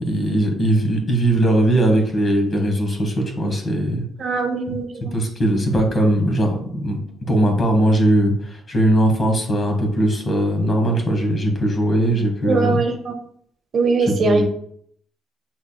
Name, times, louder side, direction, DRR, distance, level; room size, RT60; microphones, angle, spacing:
voice 1, 0.1-4.0 5.1-7.0 7.3-12.8 14.0-14.5, right 1 dB, 40° left, 3 dB, 1.2 m, -19 dB
voice 2, 4.2-5.1 12.4-13.2 13.7-14.5, right 3 dB, 55° right, 4 dB, 0.8 m, -21 dB
5.7 x 3.4 x 2.3 m, 0.64 s
cardioid pair, 90°, 0 cm